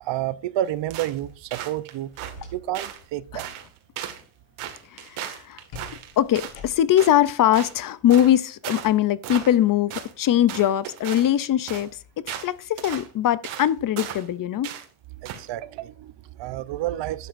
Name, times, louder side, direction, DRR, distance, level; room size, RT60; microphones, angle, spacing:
voice 1, 0.0-2.1 2.5-3.5 15.2-17.3, right 13 dB, 60° right, 0.7 m, -30 dB
sound 1, 0.9-1.2 1.5-2.3 2.7-3.0 3.4-3.7 4.0-4.2 4.6-6.6 7.0-7.2 7.5-7.7 8.1-8.3 8.6-8.9 9.2-9.6 9.9-10.1 10.5-11.3 11.7-11.9 12.3-12.5 12.8-13.1 13.4-13.7 14.0-14.3 14.6-14.8 15.2-15.4, right 10 dB, 80° right, 1.9 m, -36 dB
sound 2, 1.9-3.0 3.3-3.6 5.7-7.1, left 4 dB, 85° left, 5.9 m, -45 dB
voice 2, 4.9-5.6 6.2-11.9 12.2-14.7, left 11 dB, 45° left, 0.5 m, -21 dB
12.0 x 9.2 x 2.5 m
cardioid pair, 160°, 49 cm